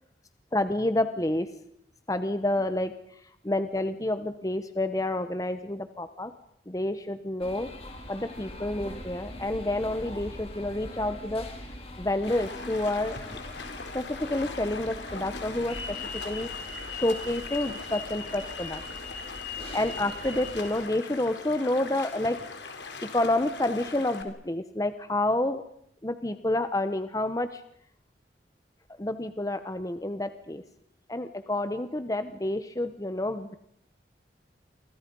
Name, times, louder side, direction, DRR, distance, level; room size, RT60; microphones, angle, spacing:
voice 1, 0.5-1.5 2.1-2.9 3.4-6.3 6.7-7.7 8.1-11.4 12.0-13.2 13.9-16.5 16.9-18.8 19.7-22.4 22.7-22.8 23.1-25.6 26.0-27.6 29.0-30.6 31.1-33.6, left 1 dB, 20° left, 10 dB, 0.9 m, -29 dB
sound 1, 7.4-20.7, left 2 dB, 35° left, 4.4 m, -41 dB
Stream, 12.2-24.2, left 4 dB, 90° left, 3.6 m, -41 dB
30.0 x 25.0 x 5.4 m, 0.70 s
head